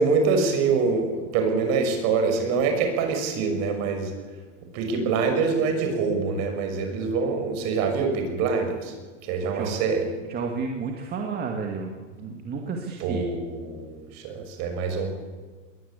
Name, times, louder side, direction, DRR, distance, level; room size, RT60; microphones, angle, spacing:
voice 1, 0.0-4.1 4.7-8.9 9.3-10.0 13.0-15.1, right 4 dB, 45° right, 5 dB, 6.3 m, -25 dB
voice 2, 9.4-9.8 10.3-13.3, right 5 dB, 25° right, 2 dB, 2.3 m, -31 dB
21.5 x 19.5 x 8.4 m, 1.4 s
supercardioid pair, 145°, 38 cm